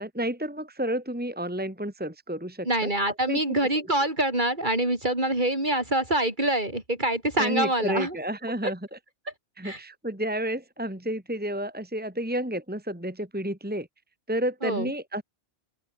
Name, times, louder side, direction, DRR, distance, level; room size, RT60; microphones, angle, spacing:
voice 1, 0.0-2.9 3.3-3.6 7.4-9.0 9.6-13.9 14.3-15.2, right 1 dB, 10° right, 2.0 m, -31 dB
voice 2, 2.7-8.2 8.6-8.7 9.6-9.8 14.6-14.9, right 1 dB, 45° right, 5.8 m, -25 dB
open air
omnidirectional pair, 1.1 m